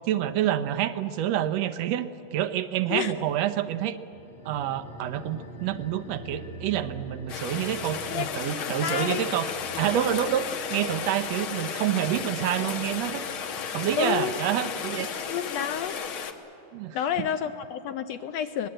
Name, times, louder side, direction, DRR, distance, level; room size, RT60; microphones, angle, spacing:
voice 1, 0.0-4.0 4.5-9.5 9.8-13.2 13.7-15.2 16.7-17.0, right 11 dB, 70° right, 9 dB, 1.9 m, -28 dB
sound 1, 4.1-15.0 15.3-15.4, equal, 30° left, 1.4 m, -47 dB
Rain, 7.3-16.3, left 6 dB, 55° left, 1.7 m, -34 dB
voice 2, 8.1-9.3 14.0-14.4 15.3-16.0 16.9-18.7, left 9 dB, 75° left, 9 dB, 1.7 m, -30 dB
24.5 x 19.5 x 8.9 m, 2.9 s
omnidirectional pair, 3.3 m